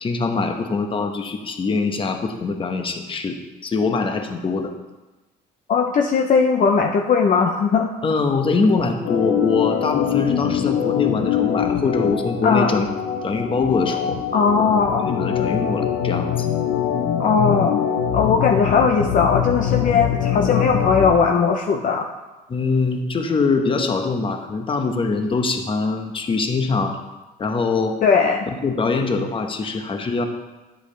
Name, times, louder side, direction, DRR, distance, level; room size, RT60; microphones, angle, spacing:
voice 1, 0.0-4.7 8.0-12.9 13.2-14.2 15.0-16.5 22.5-27.0 27.4-28.0 28.6-30.2, left 4 dB, 30° left, 5 dB, 1.1 m, -23 dB
voice 2, 5.7-7.9 12.4-12.8 14.3-15.1 17.2-17.8 18.1-22.1 28.0-28.4, left 5 dB, 50° left, 3 dB, 0.7 m, -18 dB
Organ, 9.0-21.2, left 9 dB, 85° left, 0.9 m, -23 dB
10.0 x 8.1 x 3.3 m, 1.1 s
cardioid pair, 110°, 17 cm